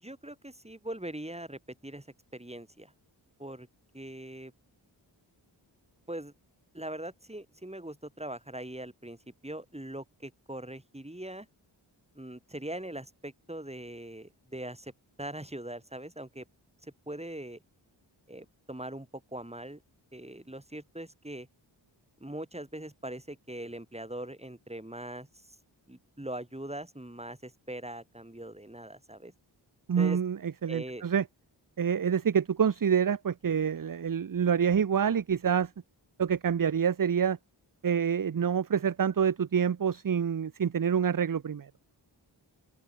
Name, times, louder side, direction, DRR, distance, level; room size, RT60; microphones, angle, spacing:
voice 1, 0.0-2.1 2.3-2.9 3.4-3.7 3.9-4.5 6.1-6.3 6.7-9.2 9.4-11.5 12.1-14.9 15.2-16.4 16.8-17.6 18.3-19.8 20.1-21.5 22.2-25.3 25.9-29.3 30.0-30.2 30.7-31.0, right 1 dB, 15° right, 5.8 m, -41 dB
voice 2, 29.9-31.2 31.8-35.7 36.2-37.4 37.8-41.7, right 7 dB, 45° right, 0.8 m, -27 dB
open air
cardioid pair, 45°, 47 cm